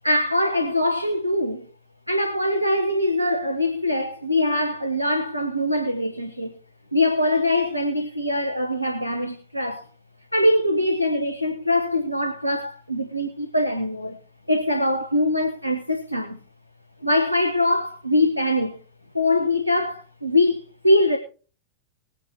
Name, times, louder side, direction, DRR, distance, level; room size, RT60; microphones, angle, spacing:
voice 1, 0.0-1.7 2.1-6.5 6.9-9.8 10.3-14.2 14.5-16.4 17.0-18.8 19.1-21.2, left 1 dB, 90° right, 1.2 m, -23 dB
20.5 x 9.4 x 2.9 m
figure-of-eight pair, 90°, 0 cm